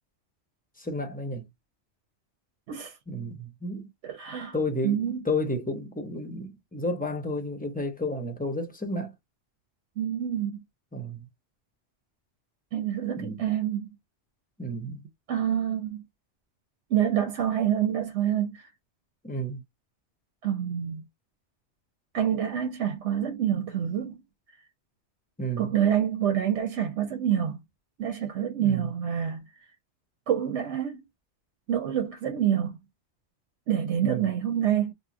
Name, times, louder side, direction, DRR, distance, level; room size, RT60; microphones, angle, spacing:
voice 1, 0.8-1.5 3.1-3.9 4.5-9.1 10.9-11.3 13.2-13.4 14.6-15.0 19.2-19.6 25.4-25.7 28.6-28.9 34.0-34.3, left 1 dB, 15° left, 0.4 m, -32 dB
voice 2, 4.0-4.5 4.8-5.2 10.0-10.6 12.7-13.9 15.3-16.0 16.9-18.7 20.4-21.0 22.1-24.1 25.6-27.6 28.0-29.4 30.3-31.0 31.7-32.8 33.7-34.9, right 9 dB, 80° right, 1.0 m, -27 dB
2.9 x 2.0 x 3.6 m
omnidirectional pair, 1.2 m